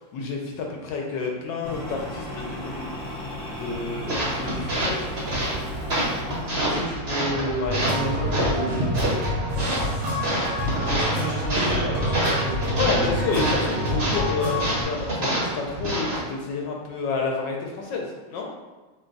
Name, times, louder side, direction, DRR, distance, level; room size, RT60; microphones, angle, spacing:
voice 1, 0.1-2.9 3.4-4.1 4.3-5.0 7.6-7.8 8.1-8.2 12.7-18.5, left 4 dB, 75° left, 0 dB, 1.2 m, -29 dB
sound 1, 1.6-6.8, left 1 dB, 45° left, 0.7 m, -35 dB
sound 2, 4.1-16.2, right 1 dB, 40° right, 1.0 m, -27 dB
voice 2, 6.6-7.6 7.9-9.2 10.3-12.7 13.3-14.0, right 2 dB, 70° right, -7 dB, 2.1 m, -31 dB
sound 3, 7.6-14.8, left 1 dB, 85° right, 1.8 m, -28 dB
4.5 x 2.2 x 3.8 m, 1.2 s
omnidirectional pair, 2.1 m